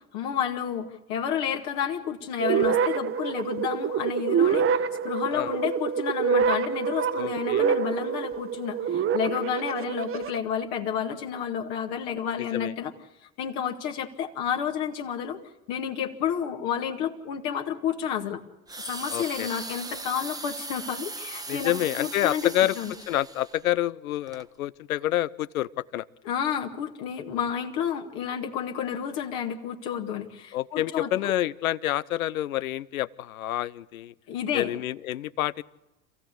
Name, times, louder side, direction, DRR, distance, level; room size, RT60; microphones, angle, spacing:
voice 1, 0.1-4.8 5.0-12.9 13.4-15.4 15.7-18.4 18.9-21.7 22.0-22.9 26.2-31.3 34.3-34.7, left 8 dB, 60° left, 3 dB, 2.1 m, -30 dB
sound 1, 2.4-10.4, right 7 dB, 30° right, 1.1 m, -26 dB
voice 2, 7.1-7.7 12.4-12.7 19.1-19.5 21.5-22.7 23.1-26.0 30.5-34.1 34.5-35.6, left 14 dB, 80° left, 20 dB, 0.7 m, -28 dB
sound 2, 18.7-23.6 24.3-24.5, right 3 dB, 10° right, 1.1 m, -38 dB
27.0 x 15.5 x 8.3 m, 1.0 s
figure-of-eight pair, 75°, 42 cm